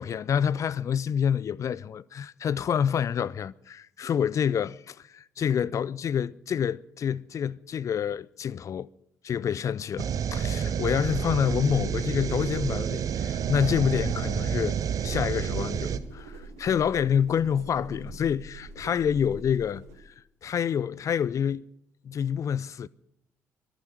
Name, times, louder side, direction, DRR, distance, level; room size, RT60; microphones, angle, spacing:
voice 1, 0.0-8.9 9.2-14.8 15.0-19.8 20.4-21.7 22.0-22.9, left 8 dB, 45° left, 0.5 m, -27 dB
sound 1, 10.0-16.0, right 8 dB, 50° right, 0.9 m, -29 dB
sound 2, 13.5-20.0, right 3 dB, 80° right, 2.1 m, -44 dB
23.0 x 9.1 x 6.3 m
figure-of-eight pair, 45°, 8 cm